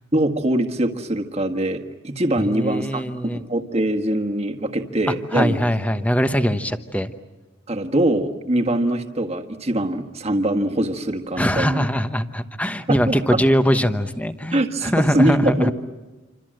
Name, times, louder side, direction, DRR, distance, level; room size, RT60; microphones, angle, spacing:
voice 1, 0.1-5.6 7.7-11.9 12.9-13.4 14.5-15.7, right 1 dB, 30° right, 4 dB, 1.7 m, -23 dB
voice 2, 2.5-3.4 5.3-7.1 11.4-15.7, equal, 5° left, 10 dB, 1.0 m, -22 dB
28.0 x 26.0 x 7.8 m, 1.1 s
head